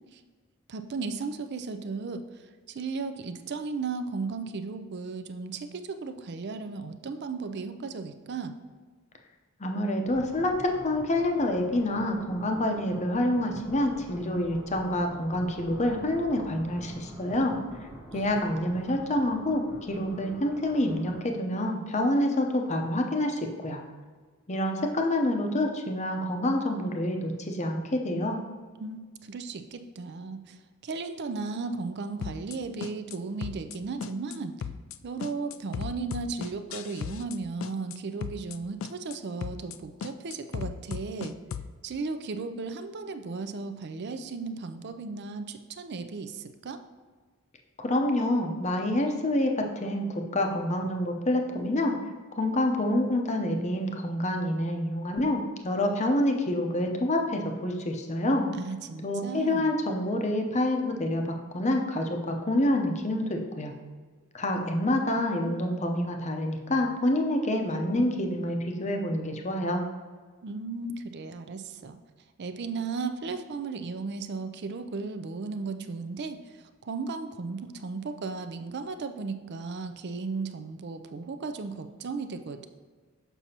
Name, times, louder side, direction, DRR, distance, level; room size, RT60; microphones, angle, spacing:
voice 1, 0.7-2.2 2.7-8.6 18.1-18.4 18.7-18.8 28.8-34.5 35.0-41.3 41.8-46.8 58.5-59.7 70.4-72.0 72.4-82.7, right 4 dB, 50° right, 9 dB, 0.4 m, -35 dB
voice 2, 9.6-17.6 18.1-23.8 24.5-28.4 47.8-51.9 52.3-58.5 59.0-63.7 64.3-69.9, left 1 dB, 30° left, 3 dB, 0.7 m, -27 dB
sound 1, 10.0-21.7, equal, ahead, 1.0 m, -46 dB
sound 2, 32.2-32.6 32.8-33.2 33.4-33.8 34.0-34.4 34.6-35.0 35.2-37.4 37.6-38.0 38.2-38.6 38.8-39.2 39.4-39.8 40.0-41.7, left 7 dB, 60° left, 0.3 m, -36 dB
6.8 x 6.0 x 2.8 m, 1.5 s
head